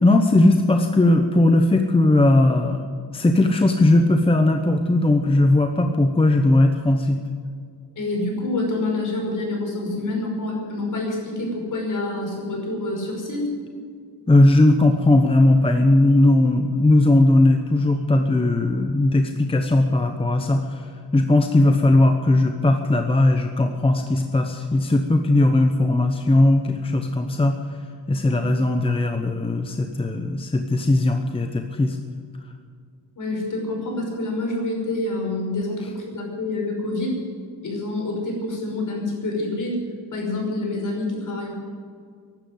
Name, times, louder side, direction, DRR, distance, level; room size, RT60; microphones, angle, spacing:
voice 1, 0.0-2.8 3.1-7.2 14.3-20.8 21.1-27.6 28.1-32.0, left 2 dB, 15° left, 5 dB, 0.9 m, -18 dB
voice 2, 8.0-13.5 28.2-28.5 33.2-37.2 37.6-39.8 40.1-41.5, left 2 dB, 50° left, 0 dB, 5.6 m, -27 dB
15.5 x 12.0 x 7.8 m, 2.2 s
wide cardioid pair, 170°, 39 cm